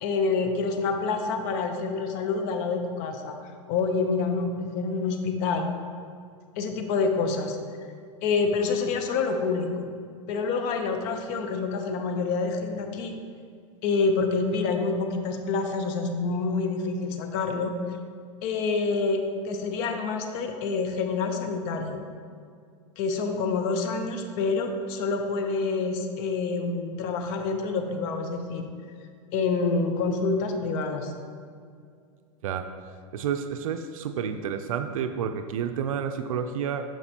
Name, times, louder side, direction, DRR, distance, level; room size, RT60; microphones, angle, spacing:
voice 1, 0.0-3.4 3.7-5.7 6.6-7.6 8.2-9.9 10.3-13.1 13.8-17.7 18.4-22.0 23.0-28.6 29.3-31.1, left 4 dB, 50° left, 5 dB, 0.7 m, -27 dB
voice 2, 32.4-32.7 33.1-36.8, right 7 dB, 80° right, 8 dB, 0.4 m, -30 dB
6.6 x 6.0 x 2.9 m, 2.2 s
hypercardioid pair, 115°, 17 cm